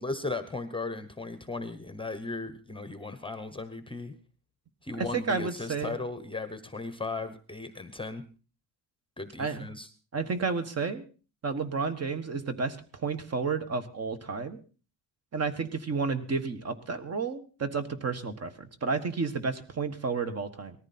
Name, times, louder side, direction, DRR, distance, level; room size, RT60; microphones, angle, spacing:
voice 1, 0.0-4.1 4.8-8.2 9.2-9.9, left 3 dB, 10° left, 10 dB, 1.0 m, -36 dB
voice 2, 4.9-6.0 9.4-9.7 10.1-11.0 11.4-14.6 15.3-20.7, right 4 dB, 35° right, 9 dB, 1.5 m, -31 dB
19.5 x 14.0 x 4.3 m, 0.37 s
cardioid pair, 155°, 45 cm